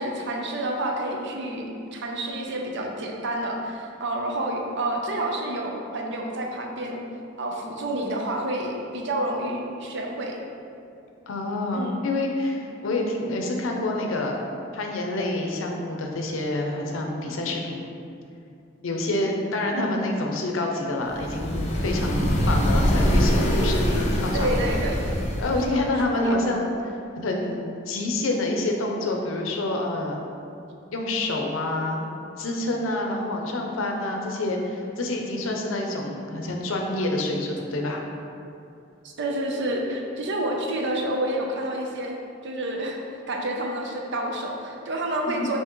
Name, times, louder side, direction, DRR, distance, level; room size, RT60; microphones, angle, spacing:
voice 1, 0.0-7.0 7.4-10.4 11.7-12.0 19.7-19.8 24.3-25.0 25.6-25.8 26.2-26.4 39.0-42.2 42.4-43.0 43.3-45.6, right 1 dB, 65° right, 1 dB, 0.6 m, -29 dB
voice 2, 11.3-14.4 14.7-17.8 18.8-24.6 25.4-30.2 30.9-32.0 32.4-38.1 45.3-45.5, left 2 dB, 85° left, 1 dB, 0.6 m, -27 dB
sound 1, 21.1-25.9, equal, 35° left, 0.6 m, -23 dB
5.7 x 2.8 x 3.0 m, 2.6 s
head